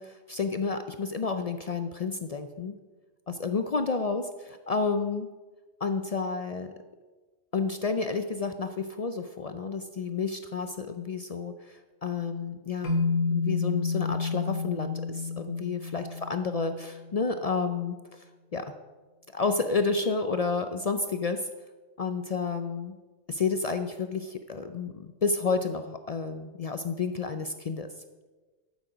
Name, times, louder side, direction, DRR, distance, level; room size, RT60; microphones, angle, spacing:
voice 1, 0.0-2.8 3.3-5.3 5.8-6.7 7.5-13.0 13.3-18.2 18.5-18.7 19.3-21.5 22.0-23.0 23.3-27.9, left 4 dB, 65° left, 8 dB, 0.3 m, -30 dB
sound 1, 12.8-17.1, left 5 dB, 85° left, 1.5 m, -30 dB
12.5 x 7.2 x 5.0 m, 1.3 s
omnidirectional pair, 1.3 m